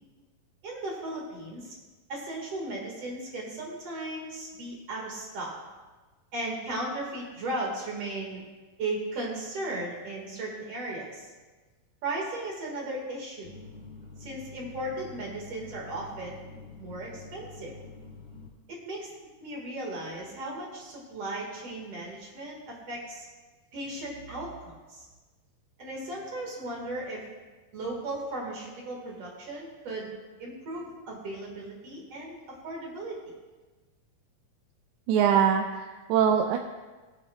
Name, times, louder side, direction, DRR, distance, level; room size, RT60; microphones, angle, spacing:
voice 1, 0.6-1.7 2.1-5.6 6.3-8.4 8.8-11.3 12.0-13.5 14.2-16.4 16.8-17.7 18.7-19.1 19.4-23.3 23.7-25.1 25.8-27.2 27.7-30.1 30.4-33.2, right 2 dB, 50° right, -2 dB, 2.2 m, -36 dB
sound 1, 13.4-18.5, left 4 dB, 30° right, 1.1 m, -47 dB
voice 2, 35.1-36.6, right 8 dB, 85° right, 4 dB, 2.5 m, -23 dB
20.0 x 8.4 x 2.3 m, 1.3 s
omnidirectional pair, 4.5 m